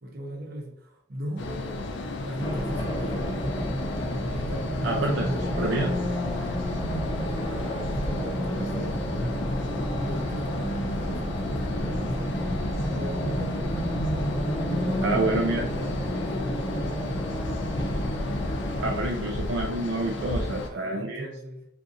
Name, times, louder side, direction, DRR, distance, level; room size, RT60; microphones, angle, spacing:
voice 1, 0.0-3.4 4.3-6.0 7.1-9.4 9.9-13.8 14.7-16.9 20.4-21.7, right 1 dB, 55° right, 1 dB, 0.8 m, -39 dB
sound 1, 1.4-20.7, left 2 dB, 85° left, 0.4 m, -33 dB
Race car auto racing, 2.4-19.0, equal, 25° left, 0.5 m, -30 dB
voice 2, 4.8-5.3 5.6-5.9 14.7-15.7 18.8-21.3, right 2 dB, 75° right, 1 dB, 0.4 m, -28 dB
3.9 x 2.5 x 2.5 m, 0.72 s
head